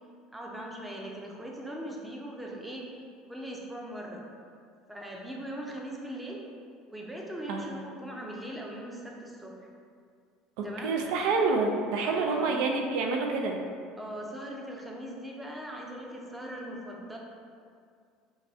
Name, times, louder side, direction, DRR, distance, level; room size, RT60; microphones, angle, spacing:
voice 1, 0.3-2.9 3.3-4.2 4.9-6.5 6.9-9.7 10.6-11.0 12.0-12.5 14.0-17.2, right 1 dB, 10° right, -1 dB, 0.6 m, -40 dB
voice 2, 10.6-13.6, right 4 dB, 70° right, 2 dB, 0.4 m, -28 dB
4.6 x 2.2 x 2.7 m, 2.2 s
supercardioid pair, 95°, 0 cm